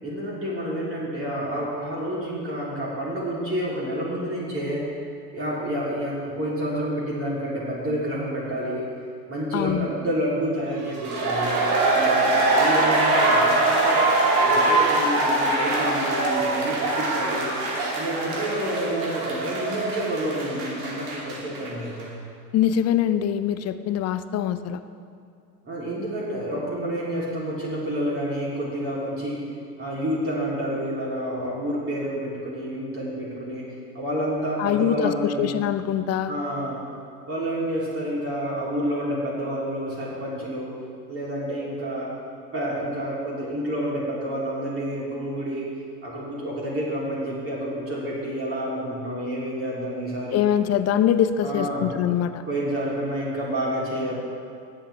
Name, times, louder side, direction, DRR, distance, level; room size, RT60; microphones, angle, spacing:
voice 1, 0.0-4.8 5.3-8.9 9.3-11.5 11.9-14.0 14.4-17.5 17.9-22.1 25.6-29.4 29.8-33.7 33.9-35.5 36.3-36.8 37.3-40.7 41.1-42.1 42.5-45.7 46.0-50.4 51.4-51.9 52.5-54.1, equal, 25° right, -7 dB, 3.2 m, -29 dB
voice 2, 9.5-9.9 22.5-24.8 34.6-36.3 50.3-52.4, left 10 dB, 35° left, 11 dB, 0.6 m, -23 dB
sound 1, 10.9-21.7 22.0-22.1, right 2 dB, 65° right, 2.8 m, -23 dB
18.5 x 7.6 x 3.4 m, 2.3 s
hypercardioid pair, 85°, 49 cm